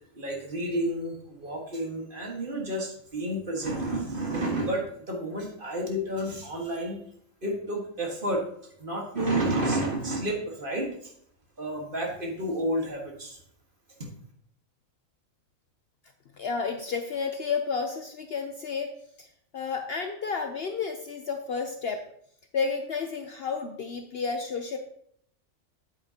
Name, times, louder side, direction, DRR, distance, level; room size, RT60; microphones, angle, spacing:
voice 1, 0.1-7.0 7.4-8.4 8.8-11.1 11.6-13.4 14.0-14.1, right 1 dB, 40° right, 0 dB, 1.7 m, -30 dB
voice 2, 16.4-18.9 19.2-19.3 19.5-22.0 22.5-24.8, left 5 dB, 60° left, 5 dB, 0.7 m, -31 dB
8.6 x 8.3 x 2.8 m, 0.67 s
omnidirectional pair, 1.4 m